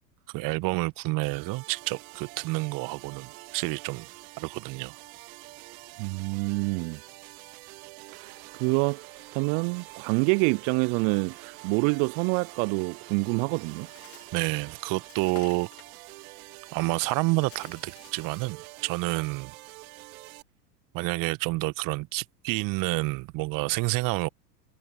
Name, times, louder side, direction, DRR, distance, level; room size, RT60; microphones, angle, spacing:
voice 1, 0.3-4.1 4.4-4.9 14.3-15.7 16.7-19.5 20.9-24.3, right 24 dB, 40° right, 1.4 m, -29 dB
sound 1, 1.2-20.4, right 22 dB, 55° right, 2.8 m, -47 dB
voice 2, 6.0-7.0 8.1-9.0 9.3-13.9, right 36 dB, 25° right, 0.3 m, -27 dB
sound 2, 8.1-15.1, right 11 dB, 70° right, 3.1 m, -54 dB
Bird, 13.5-18.6, left 10 dB, 25° left, 2.6 m, -53 dB
figure-of-eight pair, 85°, 50 cm